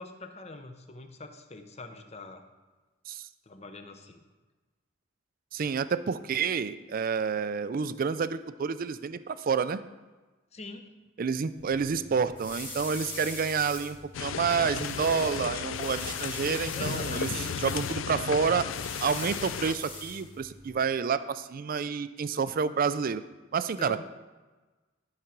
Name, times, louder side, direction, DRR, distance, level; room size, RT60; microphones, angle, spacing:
voice 1, 0.0-2.4 3.4-4.2 10.5-10.9 16.7-17.7 23.8-24.0, left 2 dB, 35° left, 6 dB, 0.8 m, -43 dB
voice 2, 5.5-9.8 11.2-17.3 17.6-18.7 19.0-23.2 23.5-24.0, right 6 dB, 45° right, 14 dB, 0.4 m, -29 dB
sound 1, 11.6-20.8, left 2 dB, 10° left, 1.9 m, -43 dB
sound 2, 14.1-19.7, left 7 dB, 75° left, 0.4 m, -34 dB
12.0 x 4.9 x 5.9 m, 1.2 s
head